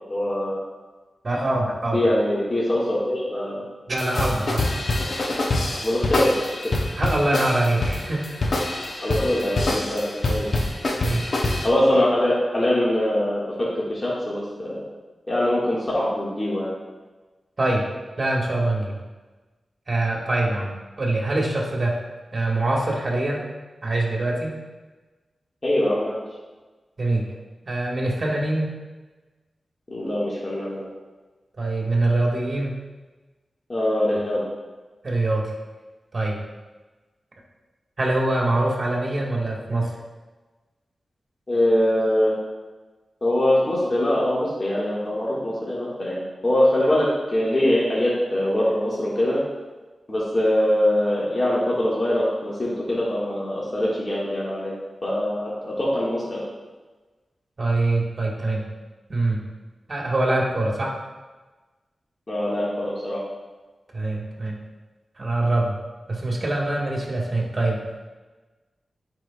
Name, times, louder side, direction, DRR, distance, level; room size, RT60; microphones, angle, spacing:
voice 1, 0.1-0.6 1.9-3.6 5.8-6.4 9.0-10.6 11.6-14.8 15.3-16.7 25.6-26.2 29.9-30.9 33.7-34.4 41.5-42.3 43.2-49.4 50.1-54.7 55.0-56.4 62.3-63.2, left 1 dB, 40° left, -8 dB, 1.9 m, -23 dB
voice 2, 1.2-2.0 3.9-4.6 7.0-8.3 11.0-11.3 17.6-17.8 18.2-19.0 19.9-22.0 22.3-23.5 23.8-24.5 27.0-27.3 27.7-28.7 31.6-32.7 35.0-35.5 36.1-36.4 38.0-40.0 57.6-58.6 59.1-59.4 59.9-60.9 63.9-64.5 65.2-65.8 66.1-67.8, right 2 dB, 50° right, -2 dB, 1.7 m, -24 dB
sound 1, 4.0-11.7, left 2 dB, 65° left, 0.8 m, -25 dB
10.5 x 4.8 x 2.4 m, 1.3 s
cardioid pair, 55°, 0 cm